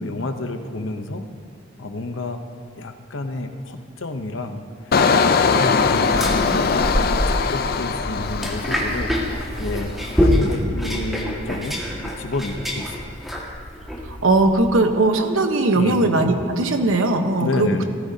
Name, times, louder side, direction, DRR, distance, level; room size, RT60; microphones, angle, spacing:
voice 1, 0.0-1.2 1.8-2.4 2.7-6.1 7.0-9.1 9.6-13.1 15.7-16.0 17.4-17.8, left 2 dB, 70° left, 7 dB, 0.8 m, -30 dB
Engine, 4.9-9.6 9.9-10.3, left 5 dB, 50° left, 0.5 m, -21 dB
sound 1, 6.0-14.7, equal, ahead, 1.8 m, -25 dB
voice 2, 14.0-17.8, right 2 dB, 90° right, 5 dB, 1.1 m, -19 dB
16.5 x 15.0 x 2.8 m, 2.2 s
head